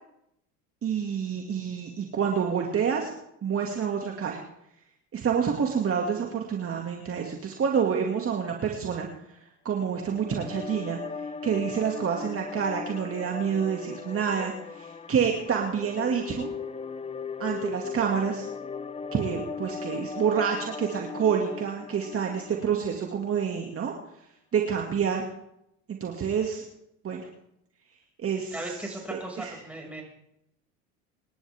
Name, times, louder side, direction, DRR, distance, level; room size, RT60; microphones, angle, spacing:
voice 1, 0.8-3.1 3.4-4.4 5.1-9.1 9.6-11.0 11.4-16.5 17.4-18.5 19.1-23.9 24.5-25.2 25.9-26.6 27.0-27.2 28.2-28.6 29.1-29.5, right 7 dB, 35° right, 1 dB, 2.3 m, -28 dB
sound 1, 9.8-23.2, left 5 dB, 15° left, 0.8 m, -38 dB
voice 2, 28.5-30.0, right 1 dB, 5° right, -1 dB, 6.1 m, -37 dB
26.5 x 11.0 x 3.6 m, 0.79 s
supercardioid pair, 95°, 38 cm